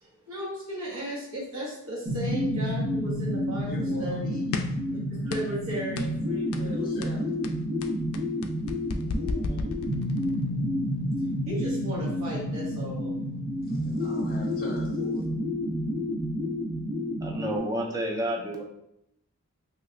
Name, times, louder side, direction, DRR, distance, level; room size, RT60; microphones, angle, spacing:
voice 1, 0.0-3.7 4.0-4.4 4.9-7.2 9.0-9.7 11.5-13.2, right 1 dB, 80° right, -6 dB, 1.3 m, -36 dB
sound 1, 2.1-17.6, left 1 dB, 65° right, 0.8 m, -30 dB
voice 2, 3.7-4.4 6.6-7.2 13.6-15.3, left 2 dB, 40° left, 1 dB, 0.6 m, -41 dB
sound 2, 4.5-4.9 5.3-5.6 6.0-6.2 6.5-6.7 7.0-10.3, left 3 dB, 85° left, 0.3 m, -33 dB
voice 3, 17.2-18.6, right 1 dB, 15° right, 0 dB, 0.4 m, -30 dB
3.2 x 2.7 x 2.5 m, 0.80 s
head